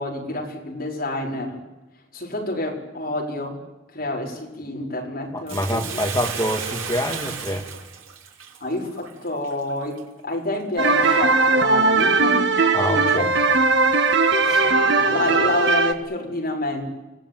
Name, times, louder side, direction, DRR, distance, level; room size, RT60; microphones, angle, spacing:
voice 1, 0.0-1.6 2.1-3.6 3.9-5.8 8.6-13.2 14.4-16.8, left 1 dB, 45° left, -1 dB, 5.1 m, -28 dB
voice 2, 5.3-7.7 12.7-13.3, equal, 15° left, 3 dB, 2.1 m, -26 dB
Bathtub (filling or washing), 5.5-10.0 10.5-10.6, right 6 dB, 80° right, 3.0 m, -33 dB
sound 1, 10.8-15.9, right 3 dB, 55° right, 1.4 m, -19 dB
sound 2, 10.9-12.6 14.3-15.8, equal, 5° right, 3.1 m, -37 dB
26.0 x 17.5 x 9.3 m, 1.1 s
head